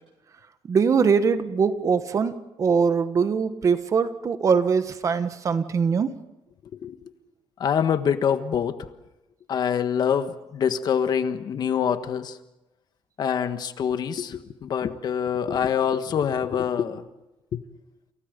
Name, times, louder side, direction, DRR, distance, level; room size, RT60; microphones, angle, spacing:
voice 1, 0.7-6.1, right 5 dB, 35° right, 11 dB, 1.3 m, -22 dB
voice 2, 7.6-8.9 9.5-12.4 13.2-17.0 17.5-17.6, left 8 dB, 50° left, 10 dB, 1.4 m, -25 dB
29.5 x 28.5 x 5.2 m, 0.99 s
cardioid pair, 160°, 9 cm